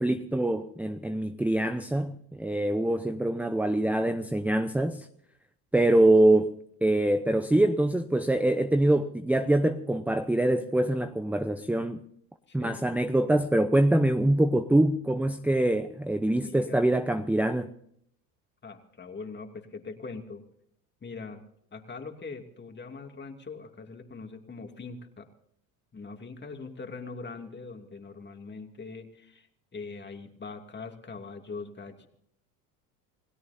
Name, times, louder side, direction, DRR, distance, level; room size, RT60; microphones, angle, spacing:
voice 1, 0.0-5.1 5.7-6.5 6.8-12.0 12.5-17.7, right 1 dB, 5° right, 0.8 m, -24 dB
voice 2, 12.5-12.9 16.3-16.8 18.6-20.4 21.0-21.4 21.7-25.3 25.9-32.1, left 4 dB, 25° left, 2.7 m, -42 dB
29.0 x 17.0 x 2.8 m
hypercardioid pair, 85°, 42 cm